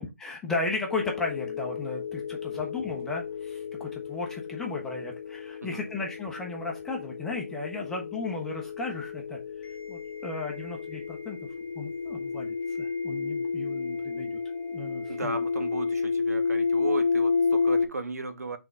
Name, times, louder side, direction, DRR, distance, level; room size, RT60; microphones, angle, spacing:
voice 1, 0.2-9.4 9.9-11.4 11.8-14.4 14.7-15.4, left 3 dB, 5° left, 1.0 m, -35 dB
sound 1, 0.9-17.9, left 5 dB, 30° left, 2.4 m, -31 dB
voice 2, 15.1-18.6, right 3 dB, 70° right, 1.4 m, -35 dB
5.9 x 3.9 x 5.0 m
figure-of-eight pair, 150°, 9 cm